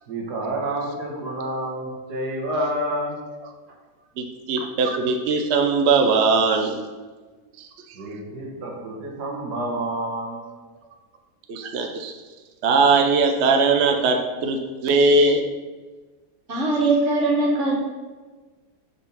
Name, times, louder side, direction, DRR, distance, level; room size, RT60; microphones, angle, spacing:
voice 1, 0.1-3.2 3.7-3.8 7.9-10.4, right 1 dB, 80° right, -2 dB, 1.8 m, -29 dB
voice 2, 4.2-6.8 7.6-8.0 11.5-12.1 12.6-15.4, right 3 dB, 60° right, 4 dB, 0.7 m, -20 dB
voice 3, 16.5-17.7, right 2 dB, 45° right, -5 dB, 2.1 m, -21 dB
5.3 x 4.3 x 5.3 m, 1.3 s
omnidirectional pair, 1.7 m